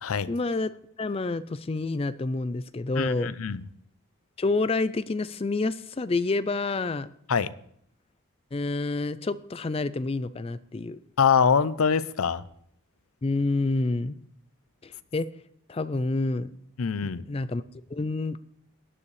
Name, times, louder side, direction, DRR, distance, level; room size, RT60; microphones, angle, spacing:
voice 1, 0.3-3.3 4.4-7.1 8.5-11.0 13.2-14.2 14.8-15.3 15.7-16.5 17.0-17.6 17.9-18.4, left 3 dB, 25° left, 16 dB, 0.4 m, -28 dB
voice 2, 3.0-3.6 7.3-7.5 11.2-12.4 16.8-17.2, left 6 dB, 85° left, 17 dB, 0.6 m, -24 dB
17.0 x 9.9 x 3.2 m, 0.69 s
head